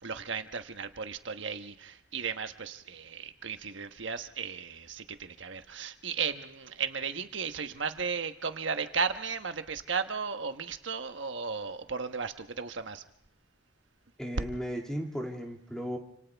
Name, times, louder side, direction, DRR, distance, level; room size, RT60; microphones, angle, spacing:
voice 1, 0.0-13.0, right 5 dB, 75° right, 8 dB, 1.2 m, -35 dB
voice 2, 14.2-16.0, equal, 5° left, 0 dB, 2.9 m, -35 dB
29.0 x 27.0 x 3.5 m, 0.69 s
head